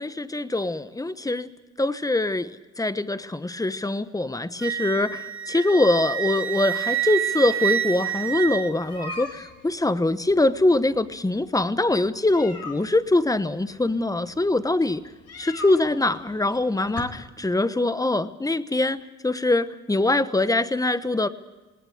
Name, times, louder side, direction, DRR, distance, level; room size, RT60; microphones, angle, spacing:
voice 1, 0.0-1.5 1.8-15.0 15.4-19.0 19.2-21.3, left 2 dB, 10° left, 13 dB, 1.1 m, -23 dB
Wind instrument woodwind instrument, 4.6-9.2, right 10 dB, 45° right, 2.0 m, -28 dB
sound 1, 8.1-17.0, left 4 dB, 55° left, 3.9 m, -43 dB
19.5 x 19.0 x 8.0 m, 1.2 s
cardioid pair, 90°, 30 cm